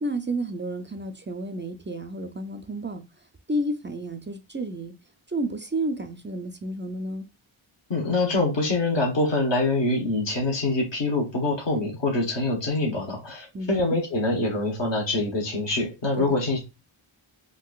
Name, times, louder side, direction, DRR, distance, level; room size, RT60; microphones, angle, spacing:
voice 1, 0.0-3.0 3.5-4.9 5.3-7.3 13.5-14.0 16.2-16.4, right 1 dB, 25° right, 0.4 m, -31 dB
voice 2, 7.9-16.6, left 2 dB, 60° left, 1.2 m, -25 dB
3.7 x 2.5 x 2.3 m
cardioid pair, 45°, 49 cm